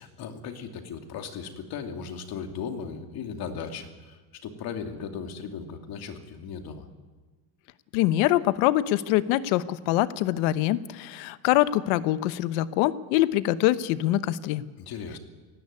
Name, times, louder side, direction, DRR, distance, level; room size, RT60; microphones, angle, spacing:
voice 1, 0.0-6.9 14.8-15.2, left 6 dB, 45° left, 5 dB, 2.6 m, -37 dB
voice 2, 7.9-14.6, left 15 dB, 75° left, 14 dB, 1.1 m, -24 dB
18.5 x 16.5 x 9.8 m, 1.3 s
cardioid pair, 140°, 50 cm